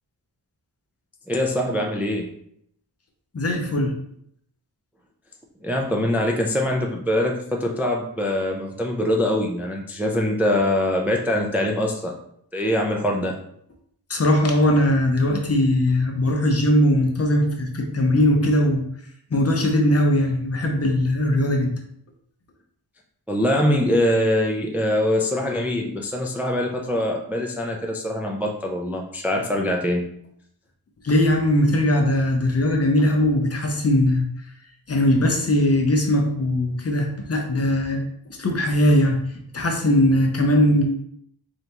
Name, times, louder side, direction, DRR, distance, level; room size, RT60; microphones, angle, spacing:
voice 1, 1.3-2.3 5.6-12.1 12.5-13.4 23.3-30.1, left 1 dB, 5° right, 0 dB, 0.4 m, -23 dB
voice 2, 3.3-3.9 14.1-18.8 19.3-21.7 31.0-34.3 34.9-38.0 38.4-39.2 39.5-40.8, left 1 dB, 35° left, 3 dB, 0.7 m, -20 dB
3.7 x 3.4 x 2.9 m, 0.70 s
wide cardioid pair, 120°, 40 cm